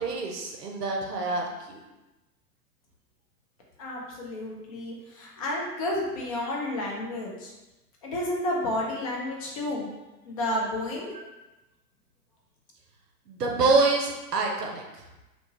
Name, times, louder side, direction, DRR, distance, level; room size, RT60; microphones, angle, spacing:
voice 1, 0.0-1.8 11.1-11.2 13.3-15.0, right 3 dB, 80° right, 1 dB, 0.6 m, -26 dB
voice 2, 3.8-7.5 8.0-9.9 10.2-11.1, left 1 dB, 25° left, -2 dB, 0.4 m, -31 dB
2.8 x 2.2 x 2.9 m, 1.1 s
figure-of-eight pair, 100°, 47 cm